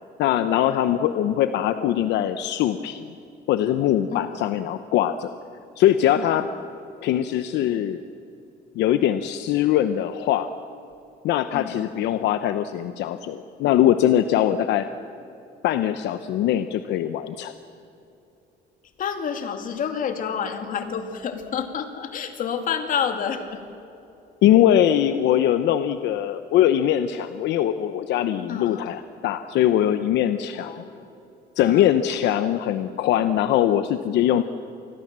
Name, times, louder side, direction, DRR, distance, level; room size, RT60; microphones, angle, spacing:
voice 1, 0.2-3.1 3.5-5.3 5.8-6.5 7.0-8.0 8.7-10.5 11.2-14.9 15.6-17.5 24.4-30.7 31.6-34.4, left 11 dB, 75° left, 10 dB, 0.9 m, -21 dB
voice 2, 4.1-4.6 6.1-6.5 11.5-11.9 19.0-23.6 28.5-28.9 30.6-31.2 31.6-31.9, left 7 dB, 50° left, 7 dB, 2.5 m, -30 dB
27.5 x 20.5 x 7.5 m, 2.8 s
cardioid pair, 150°, 18 cm